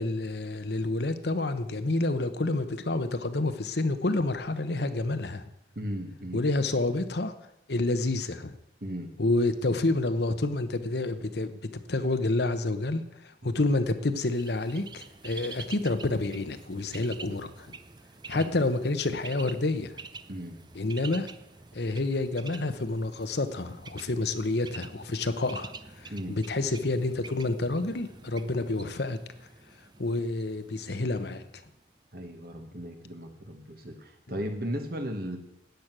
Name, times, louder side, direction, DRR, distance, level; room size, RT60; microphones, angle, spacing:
voice 1, 0.0-5.4 6.3-7.3 7.7-8.5 9.2-17.7 18.3-19.9 20.7-21.3 21.7-29.2 30.0-31.4, left 2 dB, 65° left, 10 dB, 1.0 m, -29 dB
voice 2, 5.7-6.4 8.8-9.1 13.4-13.6 18.3-18.5 20.3-20.6 26.1-26.4 32.1-35.4, equal, 55° right, 5 dB, 1.6 m, -36 dB
Bird, 14.1-31.9, right 4 dB, 25° right, 0.6 m, -47 dB
13.5 x 9.4 x 6.1 m, 0.84 s
head